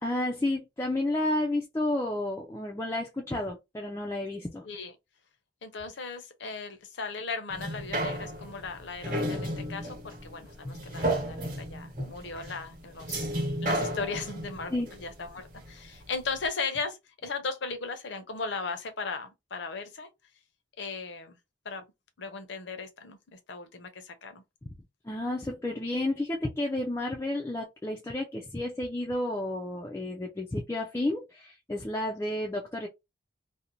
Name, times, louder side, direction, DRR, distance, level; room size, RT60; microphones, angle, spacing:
voice 1, 0.0-4.6 10.6-10.8 12.0-12.1 14.7-14.9 25.0-32.9, left 1 dB, 15° left, 0.3 m, -31 dB
voice 2, 5.6-13.3 13.6-14.7 15.0-20.1 20.8-21.4 21.6-21.8 22.2-24.4, left 4 dB, 60° left, 0.6 m, -37 dB
sound 1, 7.5-16.0 16.5-16.6, right 1 dB, 45° right, 1.0 m, -33 dB
2.5 x 2.1 x 2.9 m
head